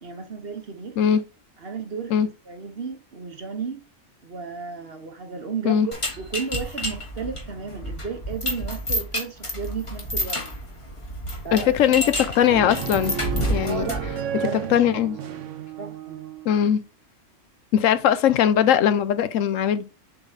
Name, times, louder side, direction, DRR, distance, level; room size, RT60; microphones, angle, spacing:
voice 1, 0.0-1.0 1.6-2.2 2.5-3.8 4.2-10.4 11.4-12.6 13.6-14.0 14.3-15.0 15.3-15.4 15.8-16.2, right 5 dB, 50° right, 1.3 m, -34 dB
sound 1, 5.9-14.2, equal, 25° left, 1.4 m, -30 dB
voice 2, 11.5-13.1 13.5-13.9 14.3-15.2 16.4-16.8 17.7-19.8, left 9 dB, 75° left, 1.0 m, -20 dB
sound 2, 12.4-16.6, right 8 dB, 70° right, 1.1 m, -32 dB
7.1 x 3.9 x 4.0 m
omnidirectional pair, 1.4 m